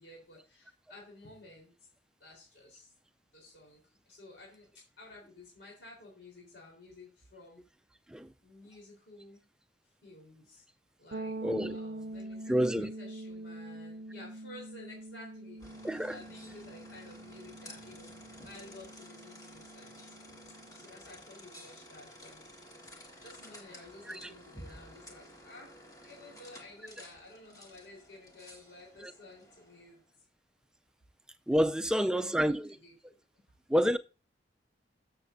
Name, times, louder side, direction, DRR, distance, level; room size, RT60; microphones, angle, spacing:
voice 1, 0.0-1.7 2.2-2.9 3.3-4.7 5.0-7.6 8.4-9.4 10.0-10.6 11.0-11.4 11.7-18.1 18.4-20.1 20.7-22.5 22.9-30.0 31.8-33.2, left 2 dB, 75° left, 3.8 m, -53 dB
sound 1, 11.1-20.8, right 2 dB, 60° right, 0.5 m, -44 dB
voice 2, 11.4-11.8 12.5-12.9 15.8-16.2 24.1-24.3 29.0-29.1 31.5-32.8 33.7-34.0, equal, 5° right, 0.4 m, -28 dB
sound 2, 15.6-30.0, equal, 20° left, 1.7 m, -53 dB
14.0 x 6.7 x 2.6 m
head